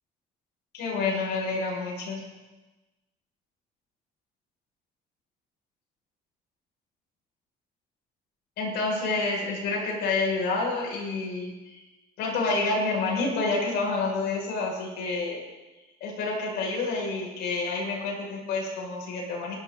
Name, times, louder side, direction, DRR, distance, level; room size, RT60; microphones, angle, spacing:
voice 1, 0.7-2.2 8.6-11.8 12.2-15.4 16.0-19.5, left 3 dB, 80° left, -3 dB, 7.3 m, -28 dB
26.0 x 12.0 x 4.3 m, 1.1 s
cardioid pair, 110°, 17 cm